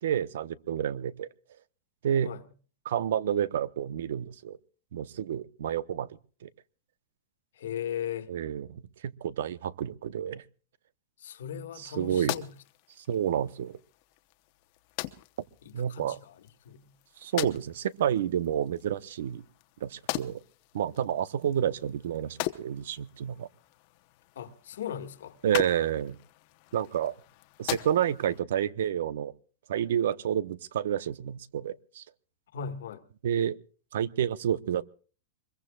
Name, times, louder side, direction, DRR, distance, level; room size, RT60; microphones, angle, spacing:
voice 1, 0.0-1.3 2.0-2.3 2.8-4.6 4.9-6.1 6.4-6.5 8.3-10.4 12.0-12.3 13.1-13.7 15.7-16.2 17.2-19.4 19.8-20.4 20.7-23.5 25.4-26.2 26.7-27.1 27.6-29.3 29.7-32.0 33.2-33.6 33.9-34.8, right 9 dB, 70° right, 0.9 m, -29 dB
voice 2, 7.5-8.3 11.2-12.5 15.6-16.9 24.3-25.4 32.5-33.0, left 8 dB, 80° left, 1.8 m, -38 dB
sound 1, 11.7-28.4, left 18 dB, 40° left, 0.9 m, -41 dB
24.0 x 22.0 x 2.4 m
supercardioid pair, 170°, 0 cm